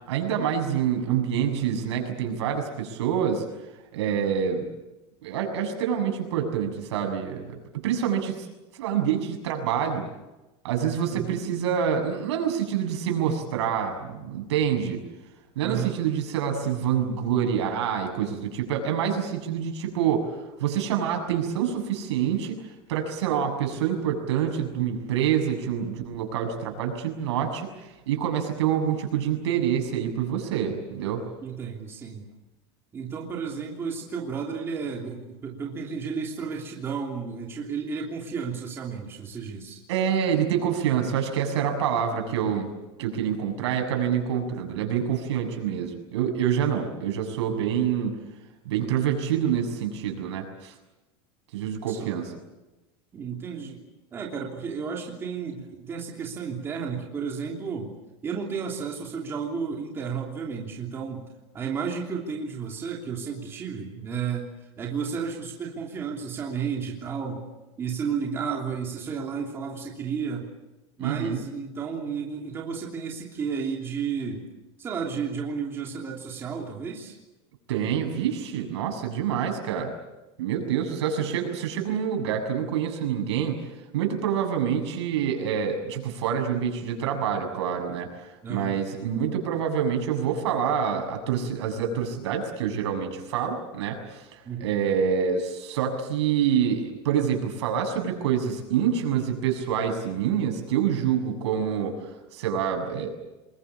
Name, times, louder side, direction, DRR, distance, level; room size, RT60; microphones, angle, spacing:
voice 1, 0.1-3.4 3.9-4.6 5.2-8.5 8.7-10.1 10.6-15.0 15.6-22.6 22.9-27.7 28.1-31.2 39.9-42.7 43.0-48.1 48.7-50.7 51.5-52.3 71.0-71.4 77.7-79.9 80.4-83.6 83.9-101.9 102.3-103.1, right 8 dB, 80° right, 4 dB, 7.1 m, -26 dB
voice 2, 10.8-11.4 15.6-15.9 31.4-32.3 32.9-39.8 51.9-52.1 53.1-53.8 54.1-57.9 58.2-61.2 61.5-64.5 64.8-67.4 67.8-70.5 71.0-74.4 74.8-77.2 88.4-88.8 94.4-94.7, right 6 dB, 15° right, -1 dB, 3.1 m, -32 dB
27.0 x 21.5 x 8.4 m, 1.0 s
supercardioid pair, 175°, 14 cm